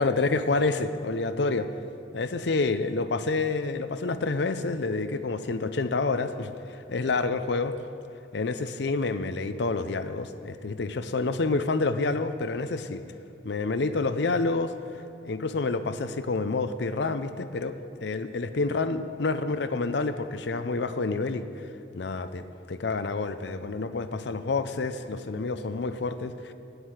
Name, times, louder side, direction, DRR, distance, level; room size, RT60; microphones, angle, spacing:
voice 1, 0.0-1.7 2.1-7.7 8.3-13.0 13.4-14.7 15.2-17.8 18.0-21.6 21.9-26.5, left 3 dB, 65° left, 10 dB, 0.6 m, -28 dB
8.4 x 8.0 x 8.9 m, 2.7 s
head